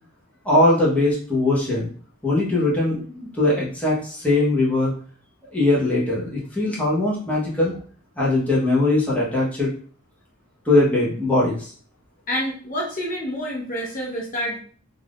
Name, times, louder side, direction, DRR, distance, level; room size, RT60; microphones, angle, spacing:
voice 1, 0.4-1.9 2.2-4.9 5.5-7.7 8.2-9.7 10.6-11.7, left 2 dB, 5° left, -7 dB, 0.8 m, -20 dB
voice 2, 12.3-14.6, equal, 40° left, -2 dB, 0.7 m, -28 dB
2.5 x 2.4 x 3.4 m, 0.44 s
head